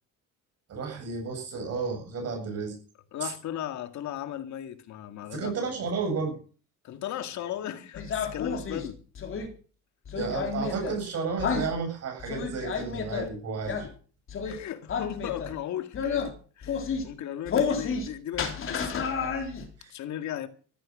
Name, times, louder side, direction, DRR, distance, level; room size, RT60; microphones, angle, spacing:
voice 1, 0.7-2.8 3.2-3.3 5.3-6.4 10.1-13.9 19.8-19.9, right 4 dB, 50° right, 7.9 m, -32 dB
voice 2, 3.1-5.5 6.8-9.0 13.8-13.9 14.4-18.9 19.9-20.5, left 11 dB, 60° left, 2.1 m, -36 dB
sound 1, 7.9-9.5 10.1-11.0 11.4-11.7 12.2-13.3 13.6-13.9 14.3-14.6 14.9-15.5 15.9-16.3 16.6-17.0 17.5-18.1 18.3-19.7, left 5 dB, 40° left, 3.8 m, -30 dB
14.5 x 14.5 x 6.3 m
cardioid pair, 140°, 32 cm